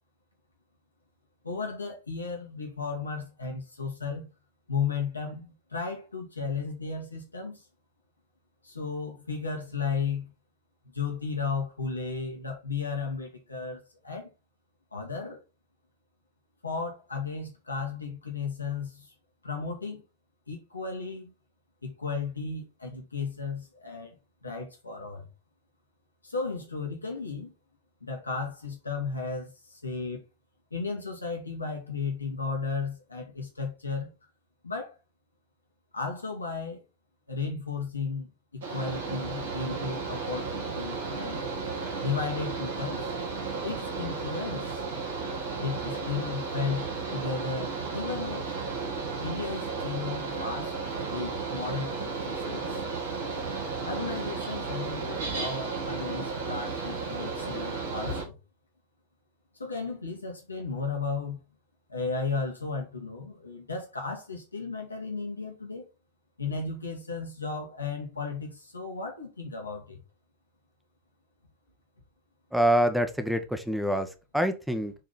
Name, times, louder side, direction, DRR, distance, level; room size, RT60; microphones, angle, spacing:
voice 1, 1.4-4.3 4.7-7.7 8.6-10.3 10.9-14.3 14.9-15.4 16.6-19.1 19.4-20.0 20.5-21.3 21.8-24.2 24.4-25.3 26.2-27.5 28.0-30.2 30.7-34.1 34.6-35.0 35.9-36.8 37.3-41.5 42.0-43.1 43.6-44.8 45.6-48.4 49.2-50.7 51.1-52.8 53.8-58.4 59.6-61.4 61.9-65.9 66.4-70.0, left 4 dB, 80° left, 1.8 m, -34 dB
Mechanical fan, 38.6-58.2, right 4 dB, 60° right, 2.2 m, -34 dB
voice 2, 72.5-74.1 74.3-74.9, equal, ahead, 1.1 m, -25 dB
7.4 x 3.8 x 4.0 m
figure-of-eight pair, 90°, 0 cm